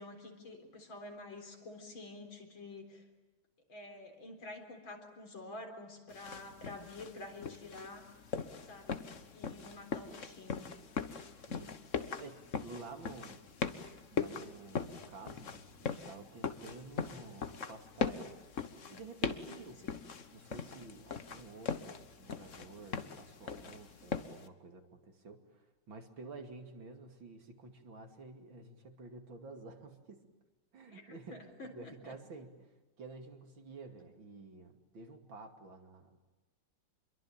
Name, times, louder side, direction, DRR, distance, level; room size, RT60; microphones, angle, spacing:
voice 1, 0.0-3.0 3.7-8.1 8.7-10.6 19.5-20.0 30.9-32.2, left 2 dB, 65° left, 4 dB, 4.7 m, -49 dB
sound 1, 6.1-24.5, left 5 dB, 40° left, 1.4 m, -41 dB
voice 2, 12.2-13.4 14.1-18.4 18.9-19.8 20.3-30.2 30.7-36.2, right 3 dB, 65° right, 5 dB, 3.3 m, -51 dB
27.0 x 23.0 x 8.9 m, 1.2 s
omnidirectional pair, 2.3 m